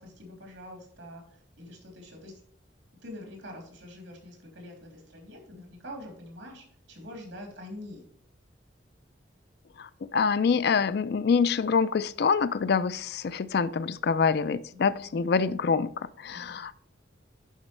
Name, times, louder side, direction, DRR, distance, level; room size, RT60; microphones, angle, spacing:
voice 1, 0.0-2.4 3.0-8.0 14.7-15.2 16.3-16.6, left 1 dB, 85° right, 1 dB, 3.2 m, -45 dB
voice 2, 9.8-16.7, left 5 dB, 60° left, 15 dB, 0.4 m, -26 dB
11.0 x 5.2 x 3.3 m, 0.62 s
head